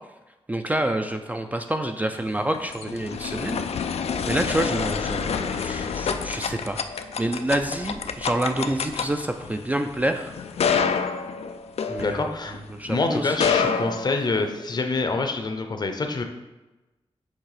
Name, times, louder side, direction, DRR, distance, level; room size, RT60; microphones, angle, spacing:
voice 1, 0.5-10.3 11.9-12.3 12.7-13.7, right 1 dB, 15° right, 6 dB, 0.3 m, -28 dB
sound 1, 2.3-12.7 13.2-14.8, left 6 dB, 85° left, 0.4 m, -28 dB
voice 2, 12.0-12.6 12.8-16.2, left 3 dB, 45° left, 5 dB, 0.6 m, -26 dB
7.3 x 3.4 x 4.9 m, 1.1 s
wide cardioid pair, 155°, 10 cm